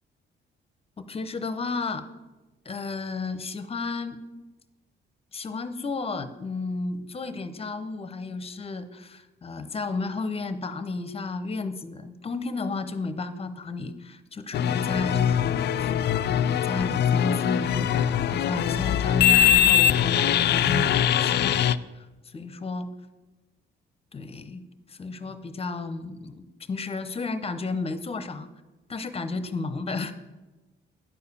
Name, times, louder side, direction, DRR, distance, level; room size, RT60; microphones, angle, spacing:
voice 1, 1.0-2.0 2.6-4.2 5.3-15.9 16.3-20.9 21.2-21.6 21.9-22.9 24.1-24.6 24.9-28.5 28.9-30.1, left 3 dB, 30° left, 11 dB, 0.8 m, -32 dB
sound 1, 14.5-21.8, left 10 dB, 60° left, 0.4 m, -22 dB
10.0 x 4.9 x 6.9 m, 1.1 s
cardioid pair, 90°, 20 cm